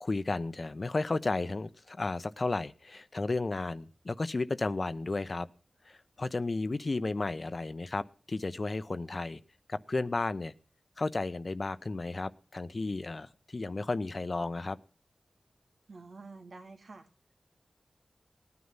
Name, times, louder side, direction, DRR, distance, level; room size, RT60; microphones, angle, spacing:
voice 1, 0.0-5.5 5.9-9.4 9.7-10.5 11.0-14.8, left 3 dB, 50° left, 14 dB, 0.9 m, -33 dB
voice 2, 15.9-17.1, right 3 dB, 80° right, 6 dB, 2.1 m, -48 dB
18.5 x 9.7 x 5.7 m, 0.35 s
cardioid pair, 50°, 0 cm